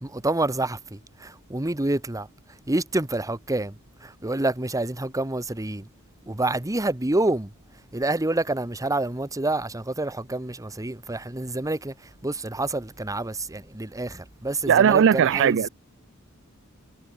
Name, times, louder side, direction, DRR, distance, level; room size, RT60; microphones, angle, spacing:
voice 1, 0.0-2.3 2.7-5.9 6.3-7.5 7.9-15.6, right 2 dB, 15° right, 1.1 m, -28 dB
voice 2, 14.7-15.7, right 8 dB, 60° right, 0.4 m, -18 dB
head